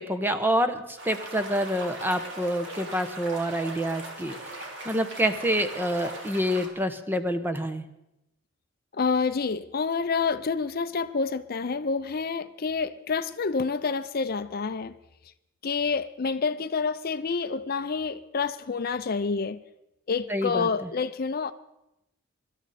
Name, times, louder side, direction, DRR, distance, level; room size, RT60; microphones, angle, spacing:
voice 1, 0.0-7.8 20.3-20.9, equal, 10° right, 0.9 m, -27 dB
sound 1, 1.0-6.7, right 1 dB, 55° right, 3.3 m, -39 dB
voice 2, 9.0-14.9 15.6-19.6 20.1-21.5, left 5 dB, 45° left, 0.5 m, -28 dB
24.5 x 12.5 x 4.2 m
head